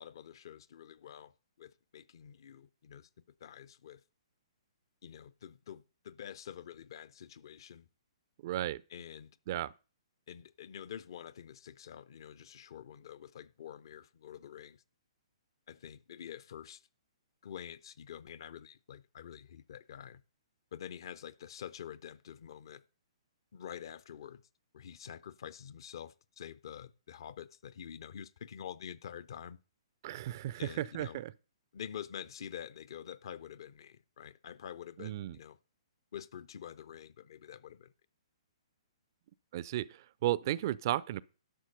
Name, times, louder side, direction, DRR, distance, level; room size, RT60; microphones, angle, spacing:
voice 1, 0.0-1.3 1.6-3.1 3.4-4.0 5.0-7.9 8.9-9.3 10.3-14.8 15.7-16.8 17.4-20.2 20.7-22.8 23.5-24.4 24.7-29.6 30.6-31.2 31.7-35.6 36.1-37.9, left 9 dB, 50° left, 0.7 m, -47 dB
voice 2, 8.4-8.8 9.5-9.7 30.0-31.3 35.0-35.4 39.5-41.2, right 14 dB, 40° right, 0.4 m, -34 dB
11.5 x 6.4 x 5.3 m
figure-of-eight pair, 120°, 3 cm